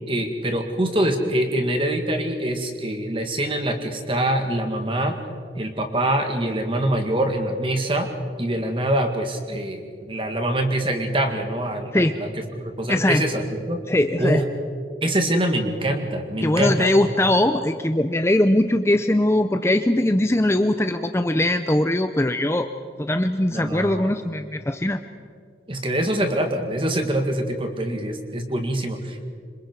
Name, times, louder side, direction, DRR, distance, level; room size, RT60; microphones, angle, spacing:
voice 1, 0.1-5.2 5.5-8.1 8.4-12.3 12.6-13.8 14.2-14.4 15.0-16.9 23.5-24.1 25.7-29.2, right 1 dB, 30° right, 5 dB, 2.1 m, -24 dB
voice 2, 12.9-13.2 13.9-14.4 16.4-22.7 23.0-25.0, left 1 dB, 15° left, 8 dB, 0.6 m, -21 dB
27.0 x 26.0 x 4.7 m, 2.2 s
head